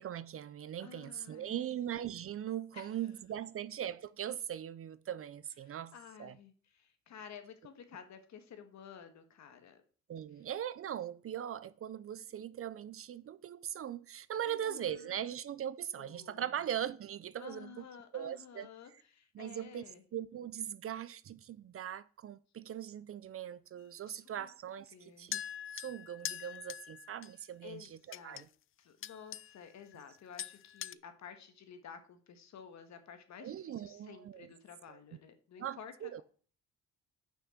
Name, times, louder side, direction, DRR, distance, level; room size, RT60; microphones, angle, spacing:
voice 1, 0.0-5.9 6.2-6.4 10.1-17.9 18.1-18.7 19.3-19.8 20.1-25.4 25.7-28.5 33.4-34.5 34.9-35.0 35.6-36.2, right 10 dB, 50° right, 0.5 m, -40 dB
voice 2, 0.8-1.7 2.7-2.9 5.6-9.8 14.5-15.3 16.0-16.6 17.4-20.0 24.1-24.5 24.9-25.3 27.6-28.5 28.8-36.2, left 7 dB, 65° left, 1.7 m, -52 dB
sound 1, 25.3-27.3 27.9-28.4 29.0-29.6 29.9-30.1 30.4-30.9, left 11 dB, 45° left, 0.4 m, -43 dB
6.5 x 5.8 x 7.2 m
cardioid pair, 90°, 30 cm